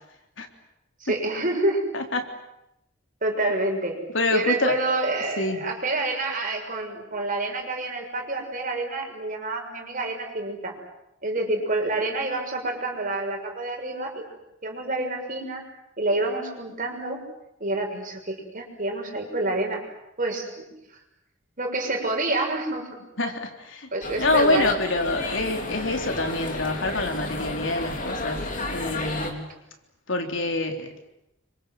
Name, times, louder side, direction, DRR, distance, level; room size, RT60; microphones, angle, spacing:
voice 1, 1.0-1.8 3.2-4.0 4.3-10.7 11.2-14.2 14.6-15.6 16.0-17.2 17.6-19.8 20.2-20.7 21.6-23.0 23.9-24.7, right 2 dB, 45° right, 2 dB, 6.5 m, -28 dB
voice 2, 1.9-2.3 4.1-4.8 5.4-5.6 23.2-23.9 24.2-29.5 30.1-30.9, left 2 dB, 75° left, 4 dB, 3.7 m, -26 dB
sound 1, 24.0-29.3, left 2 dB, 45° left, 3.9 m, -32 dB
28.0 x 25.0 x 8.0 m, 0.88 s
head